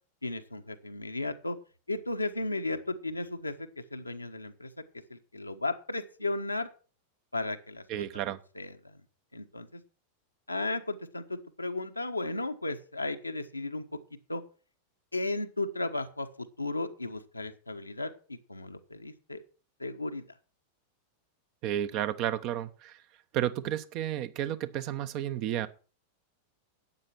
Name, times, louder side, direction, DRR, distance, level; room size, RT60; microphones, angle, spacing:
voice 1, 0.2-1.6 1.9-4.7 5.1-6.7 7.3-7.8 8.6-8.8 9.3-9.8 10.5-13.8 14.3-14.4 15.1-16.3 16.6-19.4 19.8-20.2, left 2 dB, 85° left, 6 dB, 1.3 m, -34 dB
voice 2, 7.9-8.4 21.6-23.0 23.3-25.7, right 11 dB, 40° right, 12 dB, 1.0 m, -32 dB
12.0 x 8.9 x 6.0 m, 0.38 s
figure-of-eight pair, 90°, 0 cm